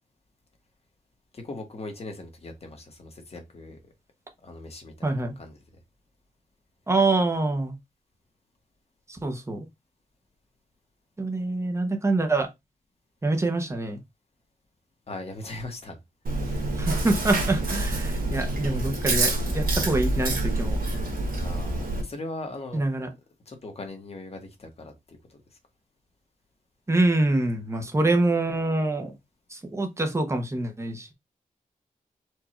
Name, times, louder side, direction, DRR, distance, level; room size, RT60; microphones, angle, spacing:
voice 1, 1.3-3.8 4.4-5.6 15.1-16.0 16.4-16.7 21.4-22.8 23.5-25.4, left 2 dB, 45° left, 1.3 m, -39 dB
voice 2, 5.0-5.3 6.9-7.7 9.1-9.7 11.2-12.5 13.2-14.0 16.8-20.8 22.7-23.1 26.9-29.1 29.5-31.1, right 2 dB, 20° right, 1.0 m, -25 dB
Chewing mastication, 16.2-22.0, right 2 dB, 90° right, 1.7 m, -27 dB
4.6 x 2.6 x 4.3 m
wide cardioid pair, 170°, 14 cm